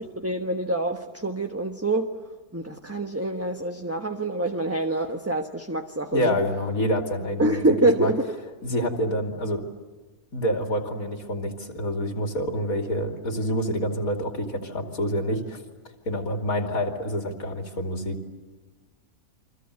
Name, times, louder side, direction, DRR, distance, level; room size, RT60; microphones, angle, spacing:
voice 1, 0.0-2.1 2.5-6.4 7.4-8.3, right 2 dB, 10° right, 4 dB, 1.1 m, -26 dB
voice 2, 6.1-7.6 8.0-8.1 8.6-9.6 10.3-15.6 16.1-18.2, equal, 70° left, 4 dB, 3.1 m, -27 dB
29.5 x 24.0 x 8.1 m, 1.3 s
omnidirectional pair, 1.5 m